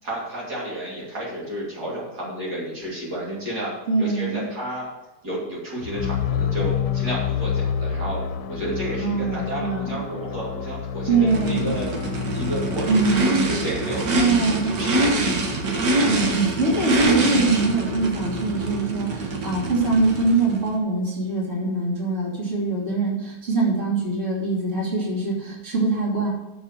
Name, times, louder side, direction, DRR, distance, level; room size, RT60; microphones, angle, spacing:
voice 1, 0.0-4.9 5.2-8.2 8.5-11.9 12.3-12.9 13.2-15.3, right 1 dB, 70° right, -6 dB, 3.3 m, -31 dB
voice 2, 3.9-4.5 9.0-10.0 11.1-11.7 12.9-13.5 14.1-14.8 16.0-26.3, right 3 dB, 45° right, -5 dB, 3.3 m, -23 dB
sound 1, 5.8-15.8, left 8 dB, 85° left, 1.2 m, -29 dB
Race car auto racing / Idling / Accelerating revving vroom, 11.3-20.7, right 2 dB, 85° right, 2.1 m, -25 dB
8.0 x 6.9 x 6.7 m, 1.0 s
omnidirectional pair, 1.8 m